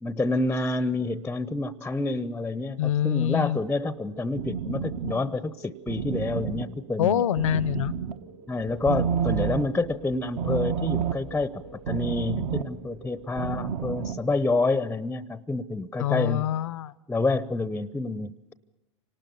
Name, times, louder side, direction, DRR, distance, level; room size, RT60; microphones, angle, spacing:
voice 1, 0.0-7.2 8.5-16.5 17.1-18.5, left 3 dB, 10° left, 16 dB, 0.8 m, -28 dB
voice 2, 2.8-3.6 7.0-7.9 16.0-16.9, left 11 dB, 70° left, 20 dB, 0.9 m, -25 dB
sound 1, 3.6-14.4, right 8 dB, 55° right, 1.3 m, -31 dB
27.0 x 19.0 x 7.1 m, 0.99 s
hypercardioid pair, 90°, 17 cm